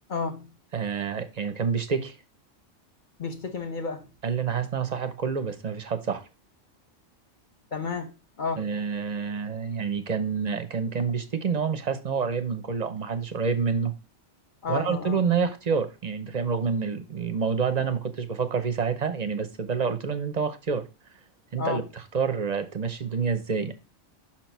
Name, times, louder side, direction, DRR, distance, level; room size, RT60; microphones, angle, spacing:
voice 1, 0.1-0.4 3.2-4.1 7.7-8.1 8.4-8.6 14.6-15.2 21.6-21.9, left 4 dB, 45° left, 1.0 m, -31 dB
voice 2, 0.7-2.2 4.2-6.2 8.6-13.9 14.7-20.9 21.5-23.7, right 6 dB, 40° right, 0.7 m, -28 dB
5.9 x 4.5 x 4.5 m
omnidirectional pair, 1.3 m